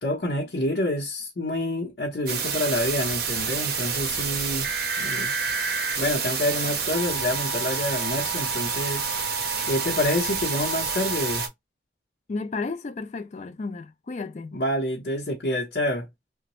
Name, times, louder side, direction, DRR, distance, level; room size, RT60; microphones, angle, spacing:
voice 1, 0.0-4.7 5.0-5.3 6.0-9.4 9.7-11.5 14.5-16.1, left 1 dB, 70° left, 0.7 m, -27 dB
sound 1, 2.3-11.5, right 5 dB, 60° right, 0.7 m, -28 dB
voice 2, 12.3-14.6, left 3 dB, 40° left, 0.3 m, -33 dB
3.0 x 2.1 x 2.9 m
head